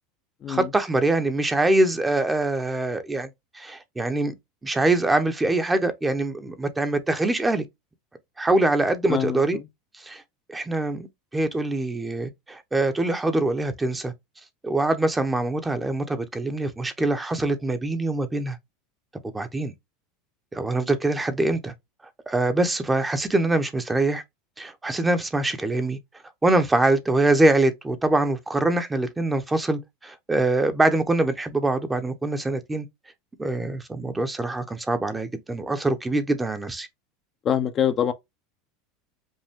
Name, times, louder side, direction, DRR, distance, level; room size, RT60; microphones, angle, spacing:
voice 1, 0.5-3.3 3.5-4.3 4.6-7.6 8.4-9.6 9.9-10.2 10.5-11.1 11.3-14.1 14.6-18.6 19.3-19.7 20.5-21.7 22.3-24.2 24.6-26.0 26.4-32.9 33.4-36.9, right 2 dB, 15° right, 0.9 m, -24 dB
voice 2, 9.1-9.6 37.4-38.1, left 9 dB, 35° left, 0.7 m, -24 dB
5.4 x 2.2 x 3.5 m
supercardioid pair, 105°, 0 cm